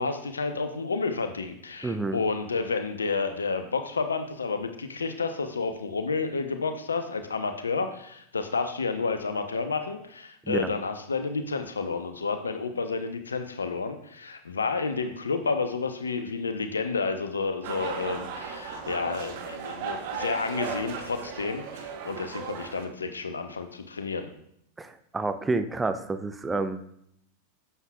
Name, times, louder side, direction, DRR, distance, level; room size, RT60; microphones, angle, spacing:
voice 1, 0.0-24.3, left 4 dB, 75° left, 8 dB, 0.8 m, -30 dB
voice 2, 1.8-2.2 10.4-10.7 24.8-26.8, right 3 dB, 10° right, 10 dB, 0.5 m, -29 dB
sound 1, 17.6-22.9, right 6 dB, 50° right, 1.0 m, -36 dB
11.0 x 7.4 x 2.3 m, 0.73 s
figure-of-eight pair, 90°, 0 cm